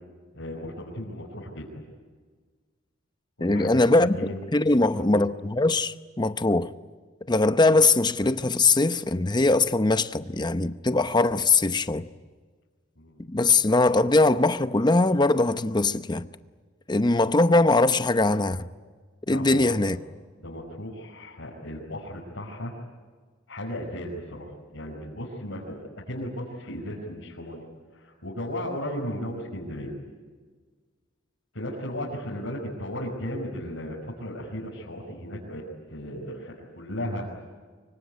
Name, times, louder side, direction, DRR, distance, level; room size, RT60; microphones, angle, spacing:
voice 1, 0.3-1.8 3.4-4.4 4.8-5.2 13.0-13.2 19.3-20.0 20.4-22.7 23.5-27.6 27.9-29.9 31.5-35.6 35.9-37.4, equal, 75° left, 5.4 m, -35 dB
voice 2, 3.4-4.2 4.5-6.7 7.3-12.1 13.3-16.3 16.9-18.7 19.3-20.0, left 2 dB, 20° left, 0.8 m, -21 dB
25.0 x 24.0 x 9.5 m
head